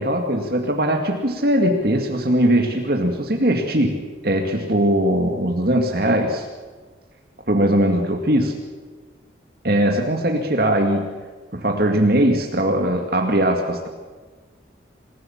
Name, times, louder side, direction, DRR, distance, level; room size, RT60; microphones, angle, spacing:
voice 1, 0.0-4.0 4.2-6.5 7.5-8.5 9.6-11.1 11.5-13.9, right 1 dB, 55° right, 3 dB, 2.2 m, -20 dB
26.5 x 16.0 x 7.2 m, 1.4 s
head